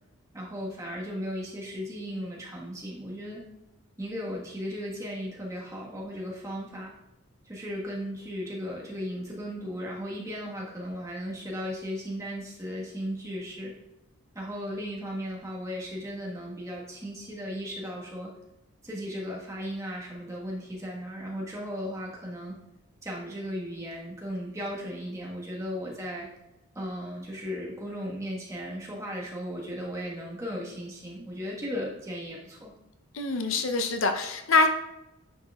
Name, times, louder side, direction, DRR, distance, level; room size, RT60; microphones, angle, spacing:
voice 1, 0.3-3.4 4.0-6.9 7.4-13.7 14.3-18.3 18.8-22.6 23.0-26.3 26.7-32.7, equal, 15° right, -4 dB, 1.3 m, -36 dB
voice 2, 33.1-34.7, left 3 dB, 65° left, 5 dB, 0.6 m, -24 dB
9.7 x 5.6 x 2.3 m, 0.90 s
head